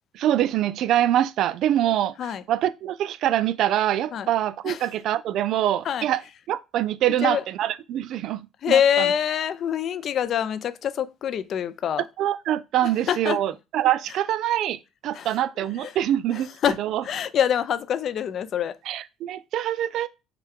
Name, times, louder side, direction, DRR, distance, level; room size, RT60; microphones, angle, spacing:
voice 1, 0.1-2.2 2.5-6.2 6.5-8.4 8.7-9.1 12.2-16.5 16.8-17.0 18.9-20.1, right 12 dB, 65° right, 0.3 m, -24 dB
voice 2, 1.9-2.4 4.1-4.3 4.6-4.8 5.8-6.1 7.2-7.4 8.6-12.0 12.8-13.4 15.1-15.3 15.8-15.9 16.3-16.8 17.0-18.8, left 9 dB, 50° left, 0.4 m, -25 dB
5.6 x 2.2 x 3.5 m
cardioid pair, 110°, 0 cm